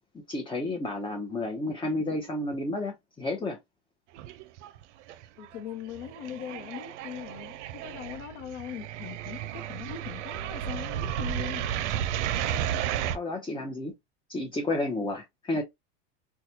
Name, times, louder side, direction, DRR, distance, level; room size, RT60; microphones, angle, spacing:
voice 1, 0.3-3.6 13.1-13.9 14.3-15.6, left 2 dB, 15° left, 0.7 m, -31 dB
sound 1, 4.1-4.8 5.1-13.2, right 10 dB, 80° right, 0.5 m, -33 dB
voice 2, 5.4-11.7, left 9 dB, 70° left, 0.8 m, -40 dB
4.1 x 2.3 x 2.7 m
supercardioid pair, 115°, 35 cm